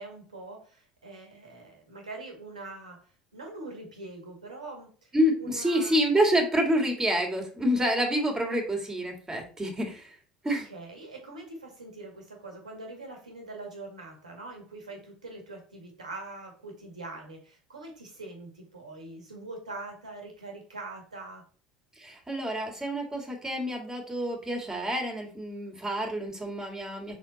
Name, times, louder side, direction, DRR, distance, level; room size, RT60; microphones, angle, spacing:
voice 1, 0.0-3.0 3.3-5.1 5.4-6.0 10.5-21.4, right 2 dB, 85° right, 1 dB, 1.9 m, -43 dB
voice 2, 5.1-10.2 10.4-10.7 22.0-27.2, equal, 15° right, 2 dB, 2.5 m, -28 dB
5.8 x 4.4 x 4.2 m, 0.39 s
figure-of-eight pair, 65°, 4 cm